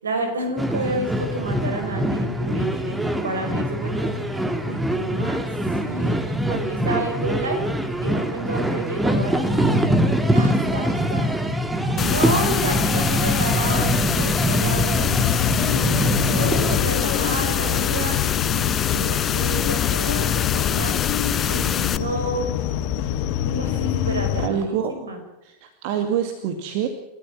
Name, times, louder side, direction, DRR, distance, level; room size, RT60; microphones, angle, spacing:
voice 1, 0.0-5.5 5.7-7.6 8.0-11.3 11.9-15.3 15.5-21.1 21.5-22.5 23.4-25.2, right 2 dB, 70° right, 6 dB, 5.4 m, -30 dB
sound 1, 0.6-16.8, equal, 5° right, 2.0 m, -23 dB
sound 2, 12.0-22.0, left 8 dB, 25° left, 0.8 m, -24 dB
sound 3, 15.0-24.5, left 11 dB, 45° left, 1.8 m, -26 dB
voice 2, 24.4-25.0 25.4-26.9, right 8 dB, 45° right, 7 dB, 2.0 m, -26 dB
30.0 x 13.5 x 7.5 m, 0.96 s
figure-of-eight pair, 90°, 0 cm